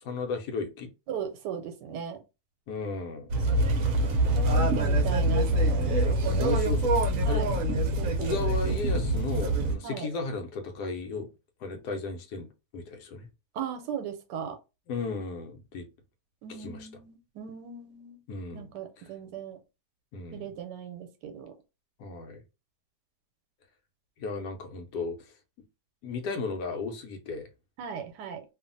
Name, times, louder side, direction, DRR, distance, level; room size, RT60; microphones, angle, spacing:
voice 1, 0.0-0.9 2.7-3.3 6.4-6.9 7.3-7.4 8.0-11.3 11.6-12.5 12.7-13.3 14.9-15.9 16.5-16.9 18.3-18.7 19.0-19.1 20.1-20.5 22.0-22.4 24.2-25.2 26.0-27.5, left 4 dB, 80° left, 1.2 m, -34 dB
voice 2, 1.1-2.2 4.2-6.5 7.2-8.4 9.8-10.1 13.5-14.6 16.4-18.2 18.5-19.6 20.3-21.5 27.8-28.4, right 7 dB, 90° right, 1.2 m, -38 dB
sound 1, 3.3-9.7, right 1 dB, 65° right, 0.9 m, -25 dB
2.6 x 2.5 x 2.5 m
omnidirectional pair, 1.8 m